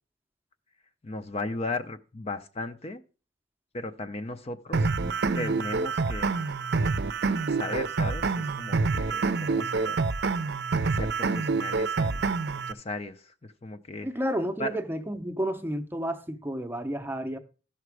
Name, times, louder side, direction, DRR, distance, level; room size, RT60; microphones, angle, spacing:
voice 1, 1.0-3.0 3.7-4.9 5.3-6.4 7.5-10.0 10.8-12.2 12.5-14.1 14.6-14.8, left 2 dB, 35° left, 0.6 m, -36 dB
sound 1, 4.7-12.7, right 4 dB, 60° right, 0.6 m, -27 dB
voice 2, 14.0-17.4, equal, 10° right, 0.7 m, -31 dB
14.0 x 5.9 x 4.7 m
head